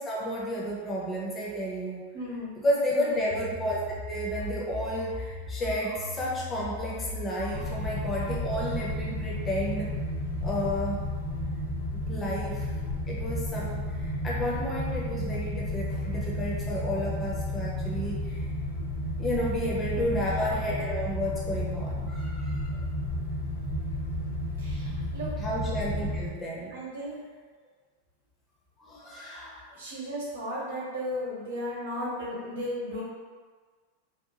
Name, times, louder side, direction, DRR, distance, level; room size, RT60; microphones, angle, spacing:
voice 1, 0.0-2.0 2.6-3.8 4.1-9.9 10.4-11.1 11.9-18.5 19.2-22.8 25.4-26.7 28.8-29.8, equal, 20° left, -5 dB, 0.6 m, -32 dB
voice 2, 2.1-2.5 2.9-3.3 19.9-20.3 24.6-25.4 26.7-27.2 29.7-33.0, equal, 60° right, -6 dB, 0.8 m, -35 dB
sound 1, 3.3-8.5, left 3 dB, 40° right, 0.4 m, -39 dB
sound 2, 7.5-26.3, left 1 dB, 70° left, 0.7 m, -32 dB
2.8 x 2.2 x 2.8 m, 1.5 s
figure-of-eight pair, 90°, 0 cm